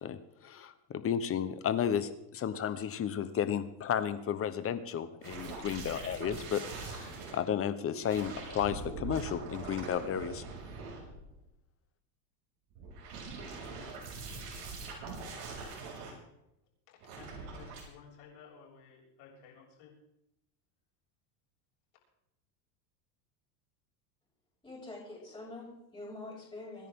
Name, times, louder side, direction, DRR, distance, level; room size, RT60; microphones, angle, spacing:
voice 1, 0.0-10.4, left 8 dB, 25° left, 12 dB, 1.0 m, -33 dB
sound 1, 5.2-7.4 8.0-11.4 12.7-16.1 17.0-17.8, right 4 dB, 60° right, 6.6 m, -43 dB
voice 2, 16.9-19.9, left 6 dB, 60° left, -2 dB, 7.1 m, -55 dB
voice 3, 24.6-26.9, left 2 dB, 10° left, -7 dB, 6.6 m, -45 dB
25.5 x 10.5 x 3.8 m, 0.86 s
supercardioid pair, 135°, 49 cm